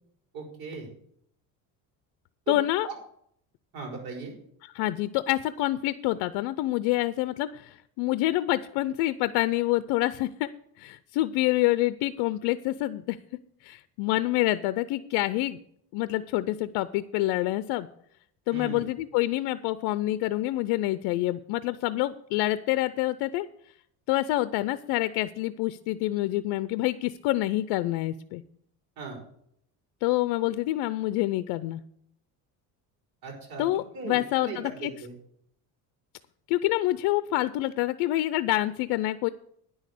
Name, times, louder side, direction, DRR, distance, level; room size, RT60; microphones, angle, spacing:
voice 1, 0.3-0.9 2.5-2.6 2.8-3.0 3.7-4.3 18.5-18.8 29.0-29.2 33.2-33.7 33.9-35.1, right 4 dB, 60° right, -1 dB, 5.4 m, -38 dB
voice 2, 2.5-2.9 4.6-10.5 10.8-13.2 13.6-15.6 15.9-17.9 18.5-23.5 24.1-28.4 30.0-31.8 33.6-34.9 36.5-39.3, left 16 dB, 75° left, 14 dB, 0.6 m, -27 dB
10.0 x 6.4 x 8.2 m, 0.69 s
cardioid pair, 130°, 40 cm